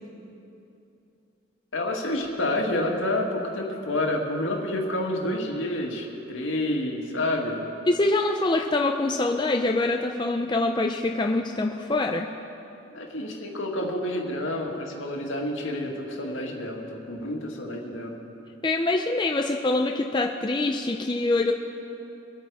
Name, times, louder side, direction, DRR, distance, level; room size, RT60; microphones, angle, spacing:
voice 1, 1.7-7.6 12.9-18.2, left 1 dB, 75° left, 0 dB, 2.0 m, -29 dB
voice 2, 7.9-12.3 18.6-21.5, left 2 dB, 20° left, 2 dB, 0.5 m, -24 dB
24.5 x 8.7 x 4.8 m, 2.9 s
head